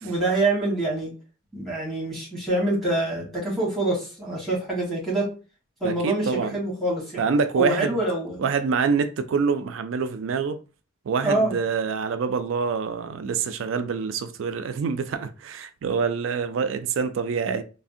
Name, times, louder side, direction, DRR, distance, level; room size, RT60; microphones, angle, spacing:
voice 1, 0.0-1.1 1.5-5.3 5.8-7.3 7.5-8.4 11.2-11.6, right 2 dB, ahead, 1.2 m, -25 dB
voice 2, 5.8-6.6 7.2-8.0 8.4-10.6 11.1-17.6, right 5 dB, 70° right, 0.3 m, -26 dB
3.4 x 2.1 x 2.5 m
head